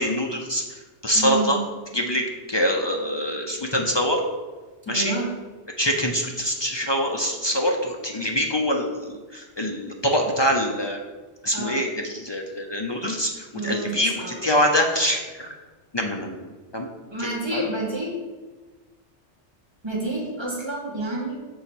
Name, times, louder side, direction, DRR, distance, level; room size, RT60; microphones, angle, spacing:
voice 1, 0.0-1.6 1.9-4.2 4.9-5.2 5.8-11.0 11.4-15.5 15.9-16.4 16.7-16.9 17.2-17.7, equal, 35° left, 1 dB, 0.4 m, -24 dB
voice 2, 1.1-1.6 4.9-5.2 11.5-11.8 13.5-14.4 17.1-18.1 19.8-21.4, right 2 dB, 25° right, -4 dB, 1.4 m, -29 dB
6.6 x 4.0 x 4.4 m, 1.3 s
omnidirectional pair, 1.2 m